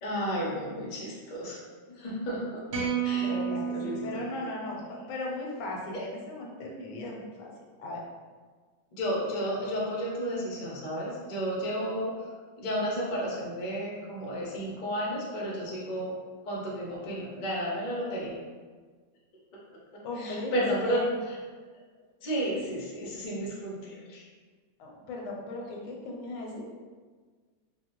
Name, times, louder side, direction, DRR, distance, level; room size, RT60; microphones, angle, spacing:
voice 1, 0.0-1.6 1.9-4.0 8.9-12.1 12.6-16.1 16.4-18.3 20.2-21.4 22.2-24.2, equal, 60° left, -5 dB, 0.4 m, -32 dB
sound 1, 2.7-5.1, right 7 dB, 55° right, 0.7 m, -32 dB
voice 2, 3.2-7.5 7.8-8.0 20.0-21.1 24.8-26.7, left 2 dB, 80° left, -1 dB, 1.2 m, -37 dB
3.6 x 2.1 x 2.9 m, 1.5 s
omnidirectional pair, 1.9 m